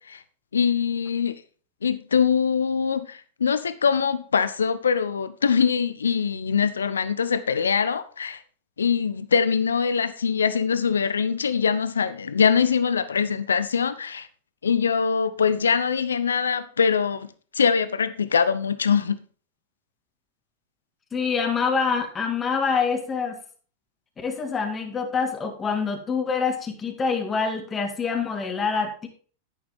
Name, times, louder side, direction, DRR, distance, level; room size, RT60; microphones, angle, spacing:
voice 1, 0.5-1.4 1.8-8.4 8.8-14.3 14.6-17.3 17.5-19.2, left 6 dB, 85° left, 0.8 m, -23 dB
voice 2, 21.1-23.4 24.2-29.1, left 5 dB, 20° left, 2.1 m, -26 dB
11.0 x 8.7 x 3.6 m
hypercardioid pair, 95°, 0 cm